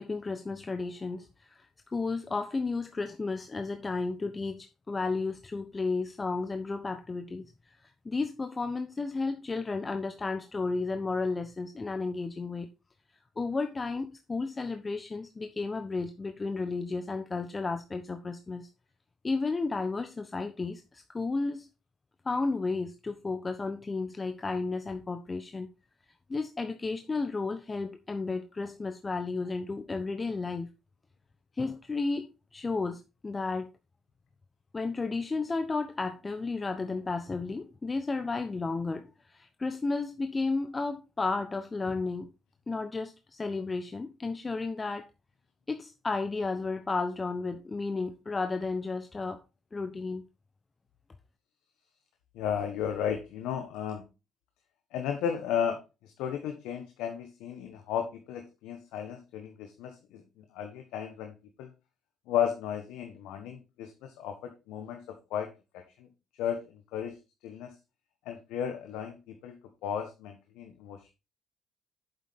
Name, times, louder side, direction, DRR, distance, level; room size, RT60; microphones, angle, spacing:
voice 1, 0.0-1.7 1.9-7.7 8.0-12.7 13.4-18.7 19.2-21.7 22.2-25.7 26.3-30.7 31.6-32.3 32.5-33.7 34.7-42.3 42.7-45.1 45.7-49.4 49.7-50.3, left 3 dB, 30° left, 1.0 m, -33 dB
voice 2, 52.3-54.0 54.9-61.3 61.6-61.7 62.3-65.0 65.3-65.5 66.0-66.1 66.4-66.6 66.9-67.1 67.4-67.7 68.2-69.5 69.8-71.1, left 8 dB, 80° left, 1.3 m, -34 dB
8.8 x 7.3 x 3.6 m
hypercardioid pair, 55°, 0 cm